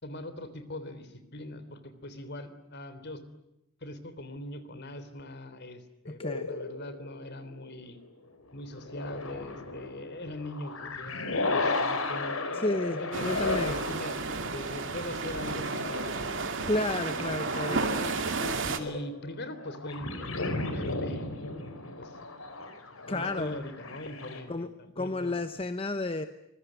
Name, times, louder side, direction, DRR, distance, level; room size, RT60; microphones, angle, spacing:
voice 1, 0.0-3.2 3.8-6.2 6.5-8.0 8.5-16.3 17.2-17.3 17.6-21.4 22.0-22.2 22.6-25.4, left 1 dB, 55° left, 12 dB, 3.4 m, -42 dB
voice 2, 6.1-6.5 12.5-13.8 16.7-17.8 23.1-23.6 24.5-24.7 25.0-26.3, left 2 dB, 25° left, 9 dB, 1.0 m, -31 dB
sound 1, 6.2-7.8 8.7-24.4, left 2 dB, 85° left, 4.2 m, -35 dB
sound 2, 13.1-18.8, right 3 dB, 65° right, 2.6 m, -32 dB
25.0 x 22.5 x 9.4 m, 0.84 s
head